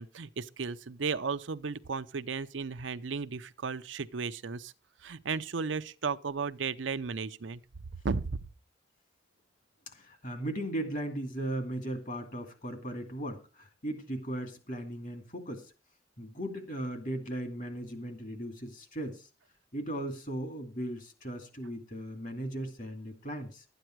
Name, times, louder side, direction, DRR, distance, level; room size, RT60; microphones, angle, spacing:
voice 1, 0.0-4.7 5.0-7.6 8.0-8.4, right 5 dB, 75° right, 0.6 m, -34 dB
voice 2, 9.9-15.7 16.2-19.3 19.7-23.6, right 1 dB, 45° left, 2.5 m, -37 dB
12.5 x 9.1 x 4.6 m
head